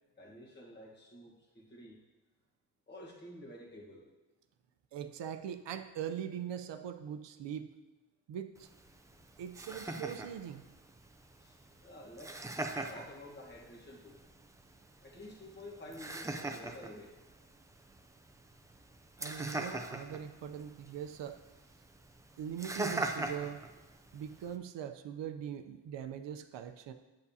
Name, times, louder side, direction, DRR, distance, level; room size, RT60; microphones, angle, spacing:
voice 1, 0.2-2.0 2.9-4.1 11.4-14.2 15.0-17.1, left 1 dB, 25° left, -2 dB, 1.3 m, -51 dB
voice 2, 4.9-7.7 8.3-8.7 9.4-10.7 19.2-21.4 22.4-23.7 24.1-26.9, right 9 dB, 80° right, 8 dB, 0.7 m, -41 dB
Laughter, 8.6-24.6, right 2 dB, 10° right, 0.3 m, -43 dB
10.5 x 8.5 x 2.8 m, 1.1 s
wide cardioid pair, 180°, 43 cm